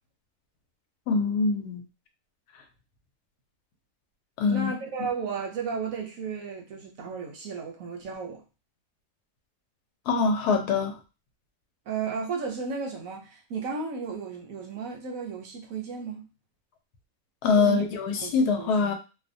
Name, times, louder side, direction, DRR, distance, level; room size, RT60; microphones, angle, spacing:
voice 1, 1.1-1.8 4.4-4.7 10.1-11.0 17.4-18.9, left 4 dB, 80° left, 1.1 m, -24 dB
voice 2, 4.5-8.4 11.9-16.3 17.6-17.9 18.2-18.7, right 5 dB, 70° right, 0.9 m, -34 dB
2.7 x 2.1 x 2.5 m
omnidirectional pair, 1.7 m